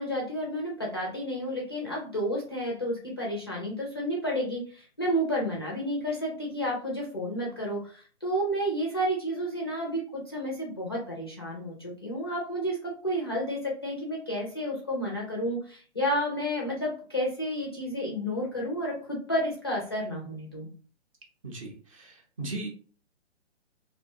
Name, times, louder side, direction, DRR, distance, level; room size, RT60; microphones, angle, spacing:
voice 1, 0.0-20.7, equal, 25° left, -3 dB, 0.4 m, -31 dB
voice 2, 21.4-22.7, right 2 dB, 30° right, 0 dB, 0.6 m, -37 dB
2.6 x 2.2 x 2.6 m, 0.41 s
figure-of-eight pair, 130°, 34 cm